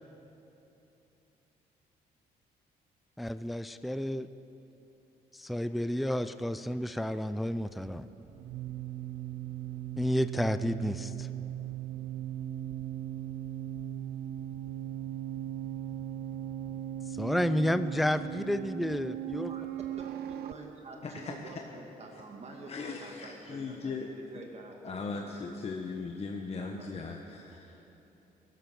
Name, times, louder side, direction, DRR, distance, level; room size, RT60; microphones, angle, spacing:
voice 1, 3.2-4.3 5.3-8.1 10.0-11.3 17.1-19.5, equal, ahead, 12 dB, 0.4 m, -31 dB
sound 1, 7.7-20.5, right 11 dB, 80° right, 0.6 m, -38 dB
voice 2, 19.5-24.8 25.1-25.2 26.6-27.2 27.8-27.9, right 2 dB, 40° right, 1 dB, 2.3 m, -47 dB
voice 3, 21.0-21.6 22.1-22.2 22.7-24.1 24.8-27.8, left 4 dB, 40° left, 2 dB, 1.1 m, -39 dB
16.5 x 11.5 x 6.9 m, 3.0 s
cardioid pair, 95°, 16 cm